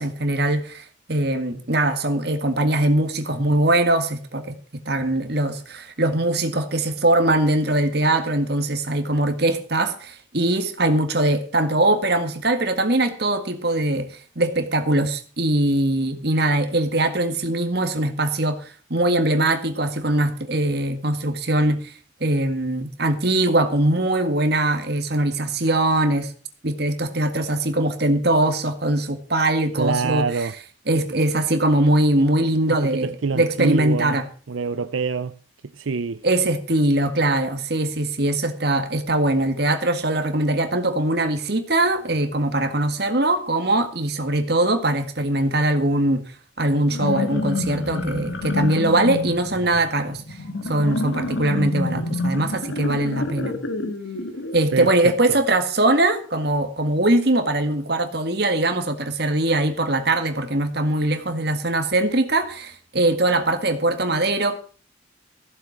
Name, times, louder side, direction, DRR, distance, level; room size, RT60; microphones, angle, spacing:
voice 1, 0.0-21.9 22.2-26.3 26.6-30.5 30.9-34.2 36.2-46.2 46.6-50.4 50.7-53.6 54.5-64.6, right 1 dB, 55° right, 1.9 m, -21 dB
voice 2, 29.8-30.5 32.7-34.2 34.5-35.3 35.7-36.2 54.7-55.4, right 4 dB, 85° right, 0.6 m, -26 dB
sound 1, 46.8-54.7, left 2 dB, 75° left, 1.7 m, -28 dB
15.0 x 7.5 x 7.1 m
head